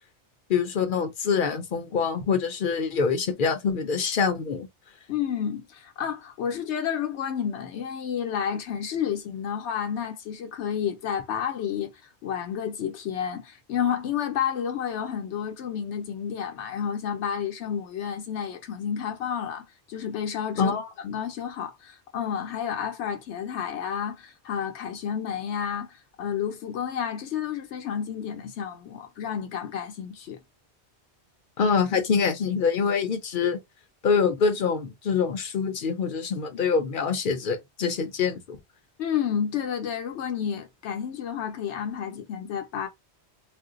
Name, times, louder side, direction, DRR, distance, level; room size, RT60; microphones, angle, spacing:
voice 1, 0.5-4.7 20.6-20.9 31.6-33.6 34.0-38.6, left 5 dB, 55° left, 0.7 m, -25 dB
voice 2, 5.1-30.4 39.0-42.9, left 8 dB, 85° left, 0.9 m, -31 dB
2.5 x 2.1 x 3.6 m
omnidirectional pair, 1.1 m